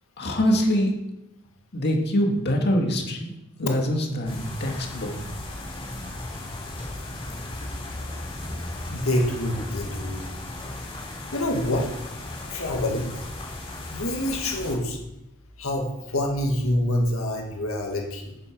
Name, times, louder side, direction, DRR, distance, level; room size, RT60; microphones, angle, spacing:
voice 1, 0.2-0.9 1.7-3.3 3.6-5.1, equal, 50° left, 1 dB, 2.0 m, -24 dB
sound 1, 4.2-14.7, left 1 dB, 25° left, 4.0 m, -36 dB
voice 2, 8.9-10.3 11.3-11.9 12.5-13.1 13.9-15.0 15.6-18.4, left 1 dB, 70° left, 1 dB, 2.0 m, -26 dB
9.2 x 9.0 x 6.1 m, 0.92 s
head